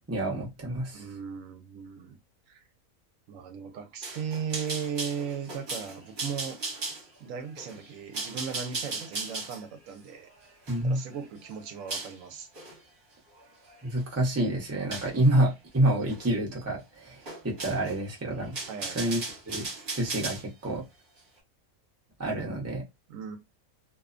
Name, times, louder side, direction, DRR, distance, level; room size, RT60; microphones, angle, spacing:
voice 1, 0.1-1.1 10.7-11.0 13.8-18.6 18.9-19.7 20.0-20.8 22.2-22.8, right 1 dB, 15° right, 0.5 m, -28 dB
voice 2, 0.9-2.2 2.5-2.6 3.3-6.6 7.2-10.3 10.8-12.5 18.7-19.2 23.1-23.4, right 7 dB, 75° right, 0.9 m, -37 dB
sound 1, 4.0-12.2 12.5-12.8 13.3-14.0 14.9-15.2 16.1-16.3 16.6-16.7 17.3-18.0 18.4-20.4, right 3 dB, 40° right, 1.0 m, -37 dB
2.7 x 2.1 x 2.4 m
omnidirectional pair, 1.4 m